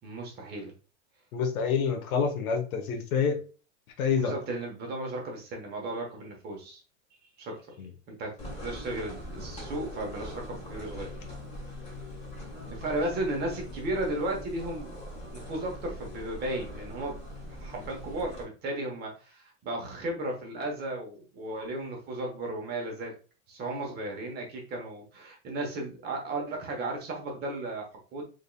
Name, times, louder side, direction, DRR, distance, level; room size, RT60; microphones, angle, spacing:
voice 1, 0.0-0.7 4.2-6.8 7.4-7.7 8.1-11.1 12.7-14.9 15.2-17.2 17.5-23.2 23.5-28.2, right 1 dB, 25° right, 1 dB, 1.0 m, -35 dB
voice 2, 1.3-3.4 4.0-4.3 7.8-7.9, left 6 dB, 90° left, 5 dB, 1.1 m, -27 dB
sound 1, 8.4-18.4, left 1 dB, 15° left, 1.3 m, -42 dB
3.7 x 3.6 x 2.2 m, 0.35 s
supercardioid pair, 155°, 42 cm